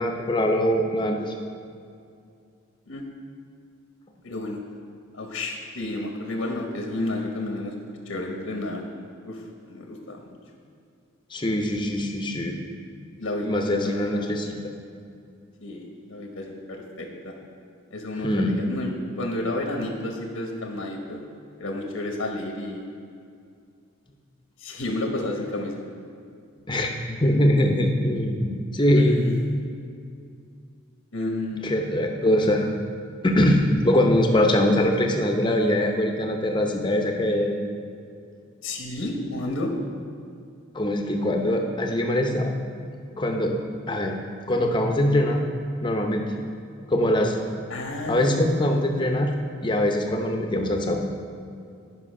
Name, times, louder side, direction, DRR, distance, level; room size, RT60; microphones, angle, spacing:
voice 1, 0.0-1.3 11.3-12.6 13.4-14.6 18.2-18.5 26.7-29.2 31.6-32.7 33.2-37.6 40.7-42.5 43.2-43.6 43.9-44.2 44.5-45.4 45.8-46.2 46.9-47.4 48.1-49.3 49.6-51.0, left 1 dB, 20° left, 3 dB, 0.7 m, -22 dB
voice 2, 4.2-4.6 5.1-8.8 9.2-10.3 13.2-14.3 15.6-17.3 17.9-18.9 19.2-21.2 21.6-22.8 24.6-25.8 28.9-29.4 31.1-31.7 38.6-39.7 47.7-49.2, left 1 dB, 75° left, 1 dB, 1.0 m, -31 dB
10.0 x 5.4 x 5.4 m, 2.4 s
head